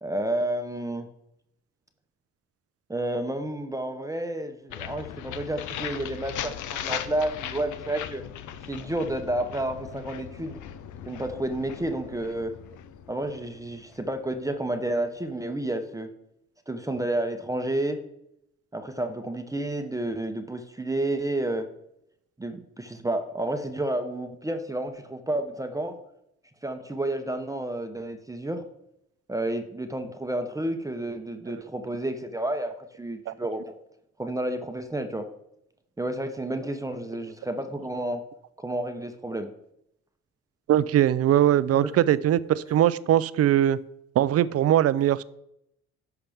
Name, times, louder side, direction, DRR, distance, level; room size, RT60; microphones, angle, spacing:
voice 1, 0.0-1.1 2.9-8.2 8.7-10.6 11.1-12.5 13.1-16.1 16.7-18.0 18.7-21.7 22.4-26.0 26.6-28.7 29.3-33.8 34.2-35.3 36.0-38.2 38.6-39.5 41.7-41.9, right 1 dB, 10° right, 6 dB, 0.7 m, -30 dB
sound 1, 4.7-14.5, left 10 dB, 75° left, 0.7 m, -38 dB
voice 2, 40.7-43.8 44.2-45.2, right 12 dB, 55° right, 17 dB, 0.4 m, -21 dB
11.0 x 5.9 x 3.5 m, 0.79 s
cardioid pair, 90°, 30 cm